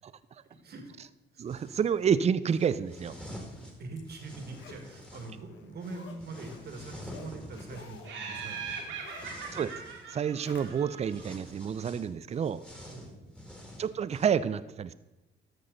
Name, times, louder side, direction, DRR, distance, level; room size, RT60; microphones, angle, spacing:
voice 1, 0.5-0.9 1.3-1.4 3.8-9.3 9.8-10.0 12.9-13.5, right 3 dB, 55° right, 4 dB, 1.8 m, -44 dB
voice 2, 1.4-3.2 9.5-9.7 10.1-12.6 13.8-14.9, right 7 dB, 35° right, 15 dB, 0.4 m, -29 dB
sound 1, 1.5-2.0 2.4-5.4 5.8-10.1 10.5-10.8 11.1-14.3, equal, 5° left, 2.0 m, -48 dB
Zipper (clothing), 3.5-11.1 11.5-11.6, left 5 dB, 70° left, 1.2 m, -53 dB
Laughter, 8.0-11.4, right 6 dB, 75° right, 2.1 m, -41 dB
13.0 x 6.2 x 3.9 m, 1.0 s
cardioid pair, 90°, 20 cm